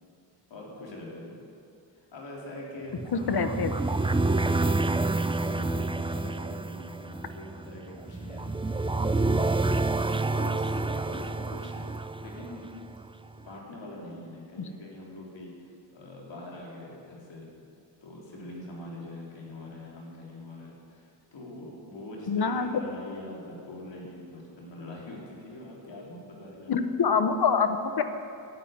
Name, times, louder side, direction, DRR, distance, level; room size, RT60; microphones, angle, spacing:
voice 1, 0.5-1.4 1.9-4.9 5.4-8.5 8.9-9.6 10.3-12.7 13.4-17.5 18.0-27.0, left 1 dB, 75° left, -3 dB, 4.0 m, -44 dB
sound 1, 3.0-13.1, right 2 dB, 10° right, 0.5 m, -28 dB
voice 2, 3.1-3.7 22.3-22.7 26.7-28.0, left 5 dB, 55° left, 9 dB, 1.1 m, -25 dB
13.0 x 9.5 x 9.6 m, 2.5 s
wide cardioid pair, 95°, 44 cm